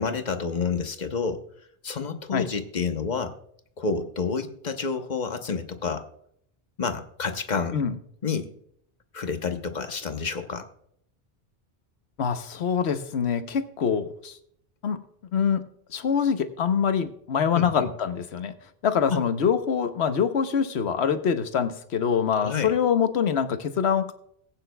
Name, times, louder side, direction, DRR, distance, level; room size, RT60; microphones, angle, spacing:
voice 1, 0.0-1.4 1.8-3.4 3.8-6.1 6.8-7.8 8.2-8.5 9.1-10.7 17.5-17.9 19.1-19.2 22.3-22.8, left 5 dB, 45° left, 7 dB, 0.9 m, -29 dB
voice 2, 12.2-14.4 14.8-15.0 15.3-18.5 18.8-24.1, left 7 dB, 90° left, 10 dB, 1.1 m, -25 dB
18.5 x 9.0 x 2.2 m, 0.68 s
omnidirectional pair, 1.1 m